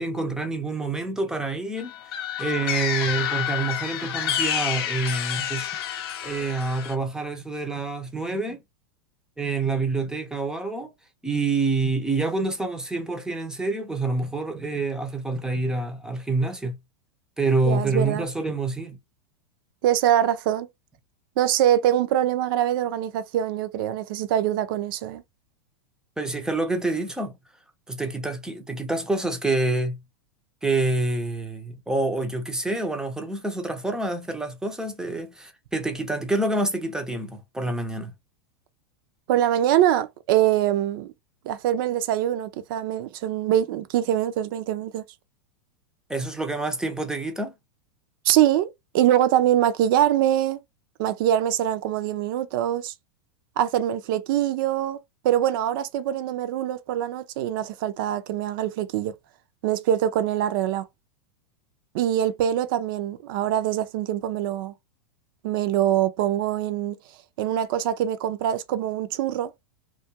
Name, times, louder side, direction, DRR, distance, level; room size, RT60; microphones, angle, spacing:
voice 1, 0.0-5.7 6.2-8.6 9.4-10.9 11.2-16.8 17.4-19.0 26.2-27.4 27.9-30.0 30.6-38.1 46.1-47.5, right 3 dB, 5° right, 0.5 m, -27 dB
sound 1, 1.8-6.9, left 10 dB, 70° left, 0.5 m, -29 dB
voice 2, 17.6-18.3 19.8-20.7 21.4-25.2 39.3-41.1 41.4-45.0 48.2-50.6 51.0-52.9 53.6-55.0 55.2-59.1 59.6-60.8 61.9-64.7 65.4-67.0 67.4-69.5, right 11 dB, 60° right, 0.5 m, -23 dB
2.3 x 2.2 x 2.8 m
hypercardioid pair, 125°, 13 cm